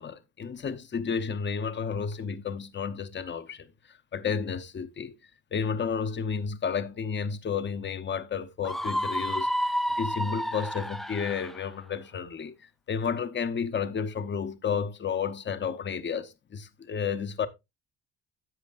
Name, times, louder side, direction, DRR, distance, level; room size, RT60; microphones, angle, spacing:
voice 1, 0.0-3.7 4.1-5.1 5.5-12.5 12.9-17.5, left 6 dB, 40° left, 0.9 m, -31 dB
Screaming, 8.6-11.6, equal, ahead, 0.5 m, -30 dB
11.0 x 7.6 x 2.5 m
cardioid pair, 90°, 30 cm